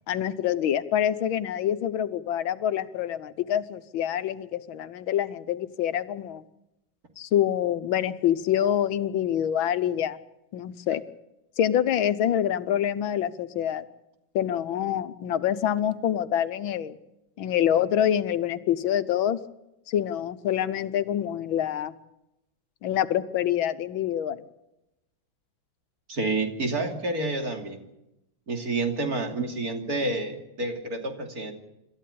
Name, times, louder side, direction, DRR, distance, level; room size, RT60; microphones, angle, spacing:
voice 1, 0.1-6.4 7.2-10.2 10.5-11.0 11.6-13.9 14.4-17.0 17.4-19.4 19.9-21.9 22.8-24.5, left 10 dB, 90° left, 13 dB, 1.7 m, -26 dB
voice 2, 26.1-27.8 28.5-31.5, right 2 dB, 50° right, 3 dB, 3.2 m, -29 dB
27.0 x 13.5 x 8.5 m, 0.90 s
omnidirectional pair, 2.1 m